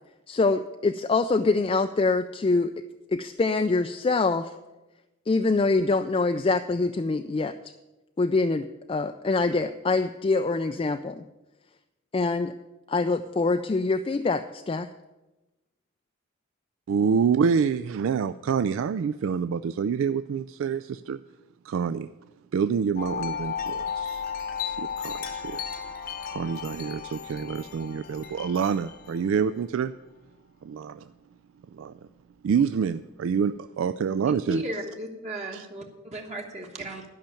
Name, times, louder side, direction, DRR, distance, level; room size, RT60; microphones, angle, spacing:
voice 1, 0.3-2.7 3.1-4.5 5.3-7.5 8.2-11.2 12.1-12.5 12.9-14.9, left 3 dB, 25° left, 7 dB, 0.3 m, -24 dB
voice 2, 16.9-21.2 21.6-22.1 22.5-24.2 24.6-25.6 26.3-29.9 30.6-31.0 31.7-31.9 32.4-34.6 35.5-35.7, right 6 dB, 75° right, 11 dB, 0.3 m, -27 dB
Wind chime, 23.0-29.5, left 7 dB, 45° left, 0.9 m, -34 dB
voice 3, 34.5-37.0, right 1 dB, 35° right, 1 dB, 1.2 m, -35 dB
12.0 x 5.7 x 9.0 m, 1.1 s
head